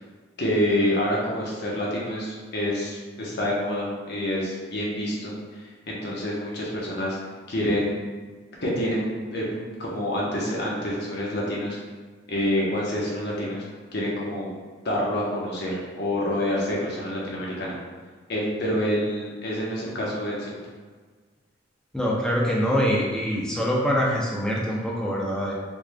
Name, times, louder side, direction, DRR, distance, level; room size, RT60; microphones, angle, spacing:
voice 1, 0.4-7.2 7.5-7.9 8.6-11.8 12.3-13.6 13.9-14.5 14.8-17.8 18.3-20.6, equal, 55° left, -4 dB, 0.9 m, -27 dB
voice 2, 21.9-25.5, equal, 5° left, -4 dB, 0.5 m, -24 dB
3.8 x 3.2 x 2.2 m, 1.5 s
head